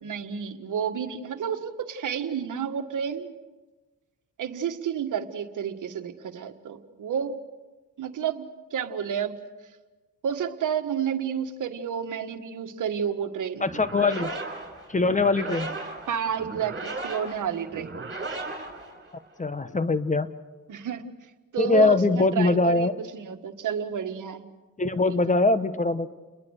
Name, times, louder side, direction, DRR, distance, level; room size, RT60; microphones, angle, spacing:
voice 1, 0.0-3.3 4.4-7.4 8.0-9.3 10.2-13.7 16.1-17.9 20.7-21.1 21.5-24.5 25.1-25.2, right 8 dB, 65° right, 8 dB, 1.8 m, -30 dB
voice 2, 13.6-14.3 14.9-15.7 19.4-20.3 21.6-22.9 24.8-26.1, left 3 dB, 20° left, 13 dB, 1.1 m, -22 dB
sound 1, 13.6-19.5, right 3 dB, 35° right, 6.2 m, -36 dB
30.0 x 21.5 x 6.6 m, 1.2 s
cardioid pair, 80°, 34 cm